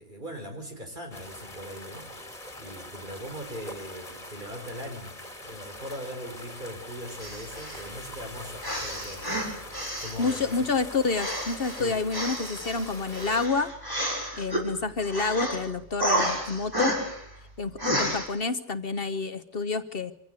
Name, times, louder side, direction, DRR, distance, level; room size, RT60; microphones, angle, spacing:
voice 1, 0.0-2.3 2.6-5.1 5.4-9.2 10.0-10.5 11.8-12.0, equal, 45° right, 3 dB, 5.3 m, -40 dB
sound 1, 1.1-13.5, left 1 dB, 30° left, 3.4 m, -43 dB
sound 2, 7.2-7.9 8.6-10.6 11.1-14.6 15.0-15.6 16.0-17.3 17.8-18.2, equal, 20° right, 6.6 m, -31 dB
voice 2, 10.2-13.7 14.4-17.0 17.6-20.1, left 4 dB, 55° left, 11 dB, 1.2 m, -28 dB
25.5 x 16.0 x 8.2 m, 0.66 s
omnidirectional pair, 1.2 m